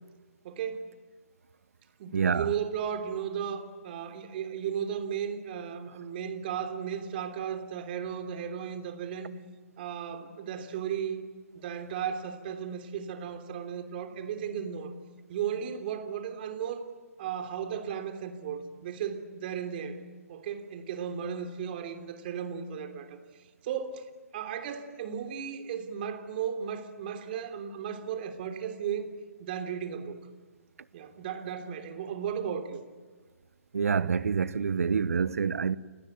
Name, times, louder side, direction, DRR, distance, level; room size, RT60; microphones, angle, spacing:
voice 1, 0.4-1.0 2.0-9.3 9.8-11.2 11.5-14.9 15.3-16.9 17.2-20.0 20.3-23.2 23.6-24.0 24.3-29.1 29.4-30.2 30.9-32.8, right 8 dB, 40° right, 3.3 m, -35 dB
voice 2, 2.1-2.5 33.7-35.8, right 6 dB, 70° right, 1.1 m, -27 dB
29.5 x 20.5 x 9.4 m
figure-of-eight pair, 140°, 8 cm